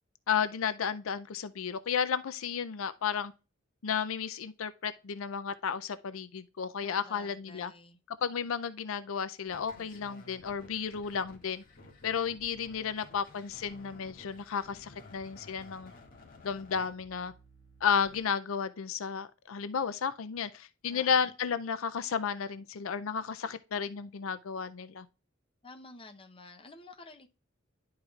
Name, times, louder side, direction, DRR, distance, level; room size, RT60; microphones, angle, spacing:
voice 1, 0.3-3.3 3.8-7.7 8.1-11.6 12.0-15.9 16.4-17.3 17.8-25.1, left 7 dB, 80° left, 0.5 m, -33 dB
voice 2, 6.8-8.0 20.9-21.2 25.6-27.3, left 3 dB, 25° left, 0.8 m, -51 dB
sound 1, 9.5-18.2, left 2 dB, 45° left, 1.9 m, -54 dB
11.5 x 4.7 x 2.4 m
head